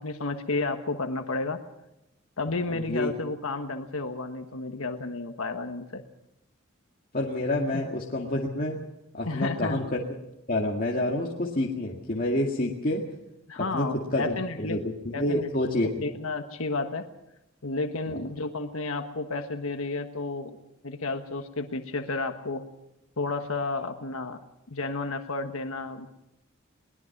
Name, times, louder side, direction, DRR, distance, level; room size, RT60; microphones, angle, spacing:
voice 1, 0.0-1.6 2.4-6.0 7.7-7.8 9.2-9.9 13.5-14.8 15.1-15.5 16.0-17.1 17.6-20.6 20.8-22.7 23.2-24.4 24.7-26.1, left 3 dB, 80° left, 6 dB, 1.4 m, -31 dB
voice 2, 2.7-3.1 7.1-8.8 9.1-10.0 10.5-13.0 13.6-15.9 18.1-18.3, left 1 dB, 40° left, -2 dB, 2.1 m, -28 dB
22.5 x 20.0 x 6.0 m, 0.87 s
head